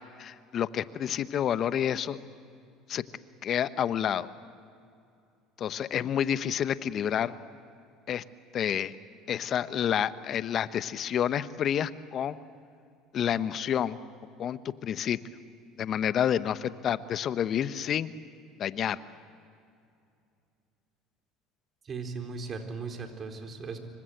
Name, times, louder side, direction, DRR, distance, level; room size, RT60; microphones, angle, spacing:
voice 1, 0.2-2.2 2.9-3.0 3.4-4.3 5.6-7.3 8.1-8.2 8.5-8.9 9.3-12.4 13.1-14.0 14.4-15.3 15.8-18.1 18.6-19.0, left 9 dB, 50° left, 14 dB, 1.0 m, -29 dB
voice 2, 21.8-23.8, right 4 dB, 40° right, 4 dB, 4.1 m, -37 dB
27.0 x 24.5 x 7.9 m, 2.5 s
hypercardioid pair, 75°, 0 cm